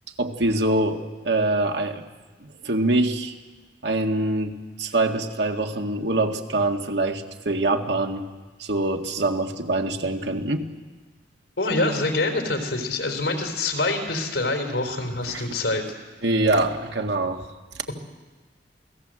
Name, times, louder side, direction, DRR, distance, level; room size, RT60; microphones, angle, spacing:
voice 1, 0.2-2.0 2.4-3.3 3.8-8.3 8.6-10.7 15.3-15.4 16.2-17.5, right 2 dB, 75° right, 3 dB, 2.0 m, -24 dB
voice 2, 11.6-15.8, left 2 dB, 80° left, 4 dB, 3.9 m, -25 dB
28.5 x 17.5 x 7.7 m, 1.3 s
head